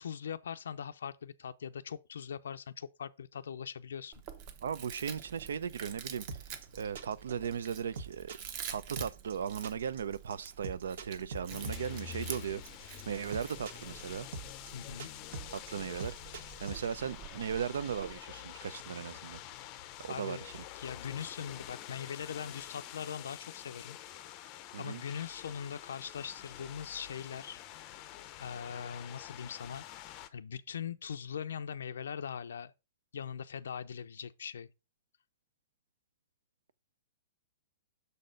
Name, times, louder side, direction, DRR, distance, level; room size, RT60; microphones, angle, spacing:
voice 1, 0.0-4.1 14.7-15.1 20.1-20.4 20.8-24.0 24.8-27.6 28.4-29.8 30.3-32.7 33.1-34.7, left 7 dB, 85° left, 0.4 m, -41 dB
Chewing mastication, 4.1-18.2, right 8 dB, 30° right, 0.9 m, -48 dB
voice 2, 4.6-6.4 6.7-8.4 8.7-14.3 15.5-16.3 16.6-19.4 20.0-20.6 24.7-25.0, right 7 dB, 80° right, 0.6 m, -37 dB
sound 1, 6.3-16.9, right 4 dB, 65° right, 1.3 m, -43 dB
sound 2, 11.5-30.3, left 12 dB, 25° left, 0.5 m, -47 dB
6.6 x 4.2 x 5.1 m
hypercardioid pair, 170°, 0 cm